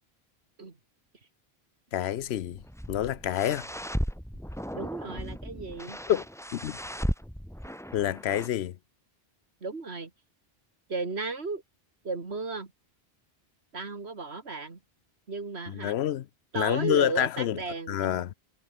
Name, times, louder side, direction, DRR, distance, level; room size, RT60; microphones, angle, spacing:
voice 1, 1.9-2.6 2.9-3.7 6.1-6.2 6.5-6.8 7.9-8.8 15.7-16.3 16.5-17.6 17.9-18.3, left 11 dB, 75° left, 0.9 m, -27 dB
sound 1, 2.2-8.5, equal, 5° left, 3.5 m, -36 dB
voice 2, 4.7-6.0 9.6-10.1 10.9-11.6 12.0-12.7 13.7-14.8 15.3-16.0 16.5-18.2, right 3 dB, 80° right, 2.6 m, -35 dB
omnidirectional pair, 1.1 m